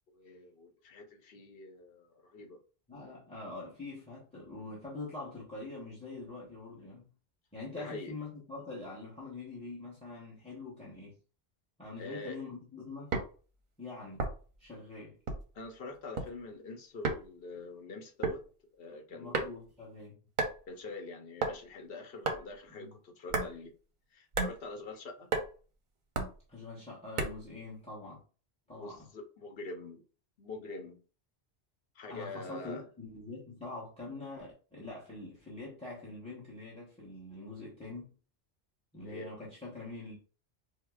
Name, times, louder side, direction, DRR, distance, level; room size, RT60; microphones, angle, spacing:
voice 1, 0.1-2.6 7.7-8.2 12.0-12.4 15.5-18.4 18.8-19.6 20.7-23.7 24.1-25.3 28.7-30.0 30.4-31.0 32.0-32.9 38.9-39.3, left 3 dB, 65° left, 3 dB, 0.9 m, -45 dB
voice 2, 2.9-7.1 7.5-11.2 11.8-13.1 13.8-14.3 14.6-15.2 19.1-20.2 22.7-23.0 26.5-28.2 28.7-29.1 32.1-38.1 38.9-40.2, left 3 dB, 5° left, -5 dB, 0.7 m, -44 dB
sound 1, 13.1-13.3 14.2-14.6 15.3-15.6 15.9-16.3 17.0-17.2 18.2-18.4 19.3-19.7 20.4-20.6 21.4-21.6 22.2-22.5 23.3-23.5 24.3-24.6 25.3-25.5 26.2-26.4 27.2-27.5, right 3 dB, 55° right, 0.7 m, -32 dB
4.6 x 2.0 x 2.3 m, 0.38 s
omnidirectional pair, 1.1 m